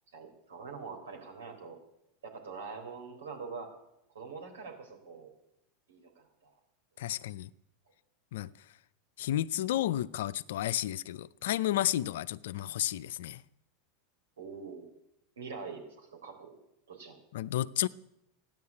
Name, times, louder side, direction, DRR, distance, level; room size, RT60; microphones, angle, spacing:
voice 1, 0.1-1.8 2.2-3.7 4.1-5.3 5.9-6.5 14.4-14.9 15.4-16.5 16.9-17.2, right 5 dB, 85° right, 4.1 m, -44 dB
voice 2, 7.0-7.5 8.3-8.5 9.2-13.4 17.3-17.9, left 13 dB, 75° left, 0.5 m, -32 dB
14.5 x 10.5 x 8.5 m
hypercardioid pair, 95°, 0 cm